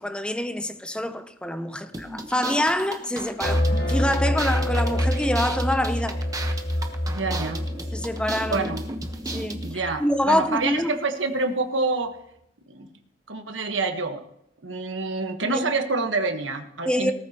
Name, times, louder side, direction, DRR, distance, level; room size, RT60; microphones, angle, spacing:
voice 1, 0.0-6.2 7.9-8.7 9.3-10.9 15.4-15.6 16.8-17.1, left 1 dB, 5° left, 0.7 m, -26 dB
sound 1, 1.9-9.7, right 2 dB, 20° right, 1.1 m, -36 dB
sound 2, 3.4-9.9, left 1 dB, 40° left, 2.4 m, -27 dB
sound 3, 3.7-8.6, left 2 dB, 55° left, 1.4 m, -42 dB
voice 2, 7.1-7.7 8.5-8.8 9.6-12.2 12.7-12.9 13.3-14.2 14.6-17.1, right 3 dB, 85° right, 1.4 m, -27 dB
18.5 x 13.0 x 3.0 m
head